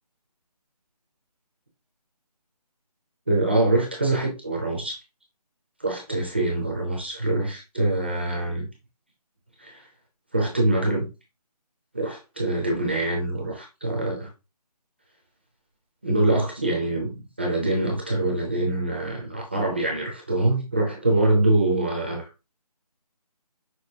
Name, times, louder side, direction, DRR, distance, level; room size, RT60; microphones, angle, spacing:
voice 1, 3.3-5.0 5.8-8.7 9.6-9.8 10.3-11.1 11.9-14.3 16.0-22.3, right 2 dB, 15° right, 0.6 m, -24 dB
6.0 x 2.9 x 2.8 m
figure-of-eight pair, 170°, 20 cm